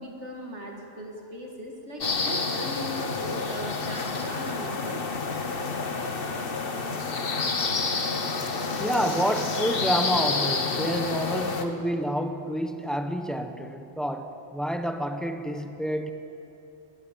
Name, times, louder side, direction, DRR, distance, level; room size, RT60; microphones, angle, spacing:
voice 1, 0.0-5.0, equal, 70° right, 1 dB, 2.3 m, -38 dB
sound 1, 2.0-11.7, left 4 dB, 55° left, 1.4 m, -29 dB
voice 2, 8.8-16.1, equal, ahead, 6 dB, 1.1 m, -29 dB
20.5 x 18.5 x 7.3 m, 2.8 s
omnidirectional pair, 1.2 m